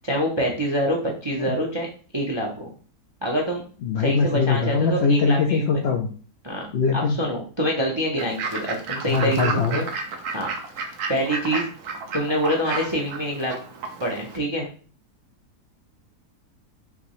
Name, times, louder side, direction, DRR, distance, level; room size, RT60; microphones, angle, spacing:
voice 1, 0.0-1.9 2.1-2.7 3.2-3.6 4.0-5.8 6.4-6.7 6.9-9.9 10.3-10.5 11.1-11.7 12.1-13.5 14.0-14.7, equal, 30° right, -1 dB, 0.5 m, -25 dB
voice 2, 3.8-6.1 6.7-7.2 9.1-9.8, left 4 dB, 70° left, 3 dB, 0.6 m, -22 dB
Fowl / Bird, 8.2-14.4, right 4 dB, 70° right, 1.3 m, -32 dB
5.9 x 2.9 x 3.1 m, 0.40 s
omnidirectional pair, 1.7 m